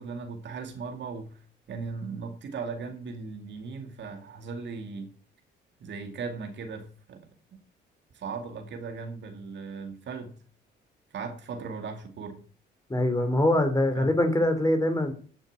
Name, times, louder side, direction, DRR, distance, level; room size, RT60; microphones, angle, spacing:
voice 1, 0.0-1.4 1.7-5.1 5.8-7.3 8.1-10.4 11.1-12.4 13.9-14.1, right 4 dB, 65° right, 2.4 m, -38 dB
voice 2, 12.9-15.1, left 1 dB, 15° left, 3.5 m, -23 dB
8.9 x 8.5 x 8.1 m
cardioid pair, 90°, 20 cm